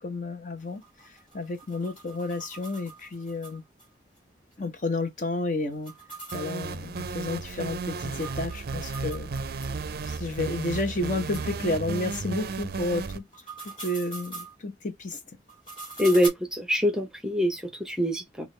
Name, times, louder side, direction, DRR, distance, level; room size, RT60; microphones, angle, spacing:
voice 1, 0.0-3.6 4.6-5.9 6.3-9.3 10.0-13.2 13.6-15.2, left 2 dB, 45° left, 0.8 m, -31 dB
sound 1, 0.6-3.9 4.2-4.3 4.5-4.6 5.7-9.7 10.1-10.2 10.8-10.9 11.3-11.5 13.2-14.5 15.5-16.3, right 2 dB, 30° left, 2.6 m, -43 dB
sound 2, 6.3-13.2, right 4 dB, 55° right, 0.4 m, -34 dB
voice 2, 16.0-18.5, equal, 5° right, 0.8 m, -25 dB
6.1 x 2.4 x 3.1 m
head